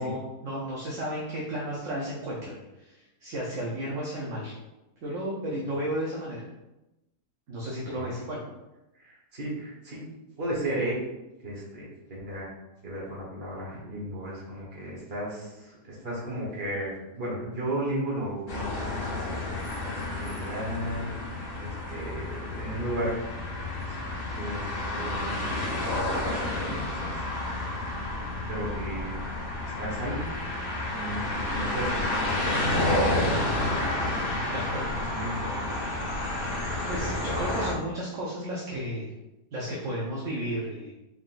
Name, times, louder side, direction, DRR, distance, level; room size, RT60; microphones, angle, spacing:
voice 1, 0.0-4.5 5.0-6.4 7.5-8.4 34.5-34.9 36.8-39.1 39.5-40.9, right 1 dB, 60° right, -4 dB, 1.0 m, -33 dB
voice 2, 9.0-10.1 10.4-11.0 11.4-12.5 12.8-19.5 19.8-23.1 23.9-24.0 24.3-24.7 24.9-25.7 26.2-27.7 28.5-29.2 29.8-30.3 30.9-32.2 32.6-32.9 33.4-33.5 34.5-35.7, right 1 dB, 40° right, -5 dB, 1.5 m, -35 dB
sound 1, 18.5-37.7, left 1 dB, 50° left, 0.7 m, -30 dB
4.5 x 3.8 x 2.5 m, 0.98 s
omnidirectional pair, 1.7 m